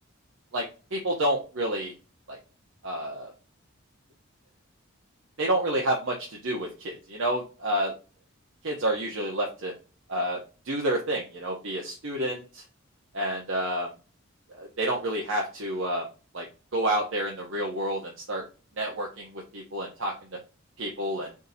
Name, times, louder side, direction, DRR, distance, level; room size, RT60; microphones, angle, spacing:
voice 1, 0.9-1.9 2.3-2.4 2.8-3.3 5.4-7.9 8.6-9.7 10.1-12.6 13.1-13.9 14.5-16.1 16.3-16.5 16.7-18.4 18.8-20.4 20.8-21.3, right 1 dB, 65° right, -1 dB, 0.8 m, -29 dB
3.6 x 2.6 x 4.0 m, 0.34 s
head